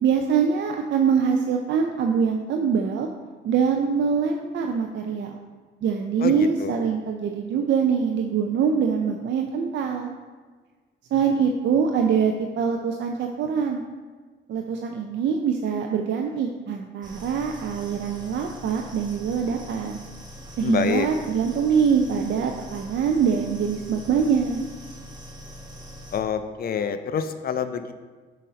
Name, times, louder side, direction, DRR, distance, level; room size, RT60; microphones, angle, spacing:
voice 1, 0.0-3.1 3.4-5.4 5.8-10.1 11.1-13.8 14.5-20.0 20.6-24.6, right 6 dB, 65° right, 3 dB, 0.5 m, -24 dB
voice 2, 6.2-6.8 20.6-21.1 26.1-27.9, left 7 dB, 50° left, 9 dB, 0.6 m, -27 dB
sound 1, 17.0-26.2, left 1 dB, 20° right, 1.2 m, -42 dB
6.6 x 4.1 x 5.1 m, 1.4 s
cardioid pair, 90°, 20 cm